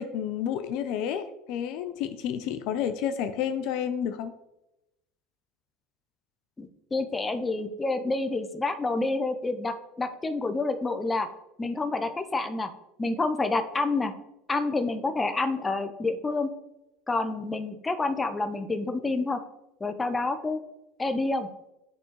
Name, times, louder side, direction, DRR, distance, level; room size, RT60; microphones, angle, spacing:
voice 1, 0.0-4.3, left 8 dB, 65° left, 10 dB, 0.4 m, -30 dB
voice 2, 6.6-11.3 11.6-12.7 13.0-14.1 14.5-16.5 17.1-19.4 19.8-20.6 21.0-21.5, left 3 dB, 20° left, 8 dB, 0.6 m, -28 dB
9.6 x 3.6 x 3.0 m, 0.92 s
hypercardioid pair, 85°, 0 cm